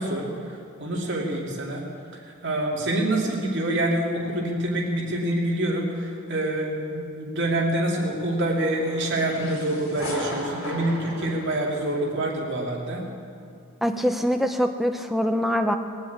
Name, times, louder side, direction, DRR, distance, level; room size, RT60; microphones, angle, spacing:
voice 1, 0.0-1.8 2.4-13.0, right 1 dB, 55° right, -2 dB, 2.9 m, -26 dB
sound 1, 8.4-12.4, equal, 70° left, 3.5 m, -36 dB
voice 2, 13.8-15.8, equal, ahead, 6 dB, 0.6 m, -23 dB
20.5 x 7.4 x 8.7 m, 2.4 s
head